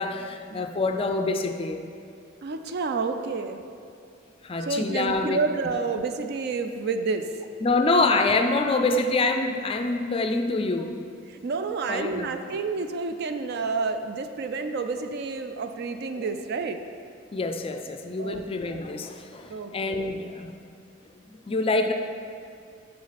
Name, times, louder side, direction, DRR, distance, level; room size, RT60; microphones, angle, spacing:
voice 1, 0.0-1.8 4.4-5.4 7.6-10.9 11.9-12.3 16.2-16.3 17.3-20.6 21.5-21.9, left 3 dB, 30° left, 6 dB, 0.4 m, -26 dB
voice 2, 2.4-3.6 4.6-7.3 11.3-16.8 18.2-18.8 19.5-20.0, right 4 dB, 55° right, 8 dB, 0.4 m, -29 dB
6.4 x 5.8 x 4.1 m, 2.5 s
head